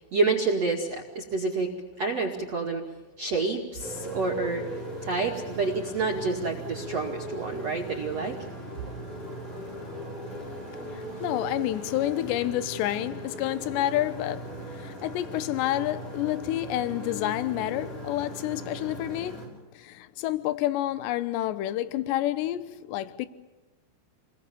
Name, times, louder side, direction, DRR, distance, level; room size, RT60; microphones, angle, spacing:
voice 1, 0.1-1.7 2.0-2.8 3.2-4.6 5.0-8.4 8.8-8.9, right 3 dB, 45° right, 2.4 m, -28 dB
Motorcycle, 3.8-19.5, right 1 dB, 40° left, 8.0 m, -38 dB
voice 2, 10.9-23.3, left 14 dB, 75° left, 2.9 m, -29 dB
29.5 x 21.5 x 7.2 m
omnidirectional pair, 5.8 m